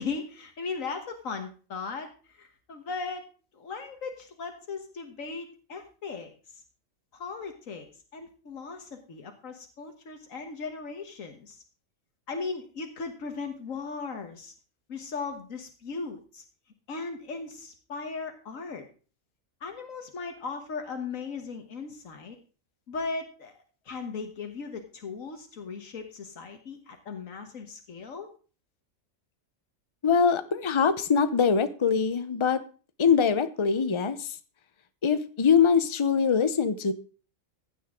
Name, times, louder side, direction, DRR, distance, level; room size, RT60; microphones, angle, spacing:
voice 1, 0.0-3.2 3.5-6.3 7.1-7.9 8.1-11.6 12.3-14.5 14.9-16.4 16.9-18.9 19.6-22.4 22.9-23.5 23.9-28.3, left 4 dB, 80° left, 5 dB, 1.8 m, -37 dB
voice 2, 30.0-32.6 33.0-34.3 35.0-36.9, left 6 dB, 25° left, 11 dB, 0.7 m, -23 dB
15.5 x 9.3 x 3.7 m, 0.38 s
omnidirectional pair, 1.4 m